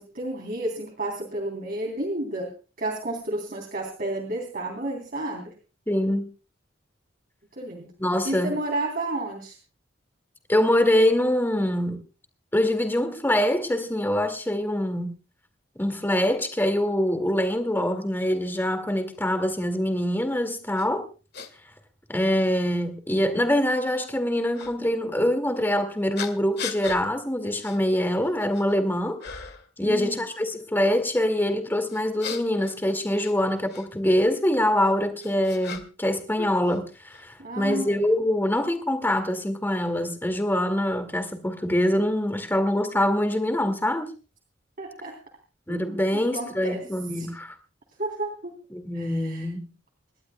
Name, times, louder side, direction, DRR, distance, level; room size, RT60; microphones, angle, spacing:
voice 1, 0.0-2.5 2.8-5.5 7.6-7.9 8.3-9.6 29.8-30.2 37.4-37.9 44.8-45.1 45.7-46.8 47.2-47.3 48.0-48.5 48.9-49.5, right 1 dB, 50° right, 3.3 m, -31 dB
voice 2, 5.9-6.2 8.0-8.5 10.5-12.0 12.5-15.2 15.8-21.1 22.1-29.2 29.8-44.1 45.7-47.5 48.7-49.7, left 1 dB, 10° left, 2.1 m, -24 dB
sound 1, 20.8-20.9 21.3-21.5 22.4-22.5 24.5-24.7 26.2-27.0 27.6-27.8 28.2-28.8 29.2-29.7 31.9-33.9 34.8-36.1 36.4-37.2, left 6 dB, 60° left, 1.9 m, -38 dB
27.5 x 12.0 x 2.2 m
head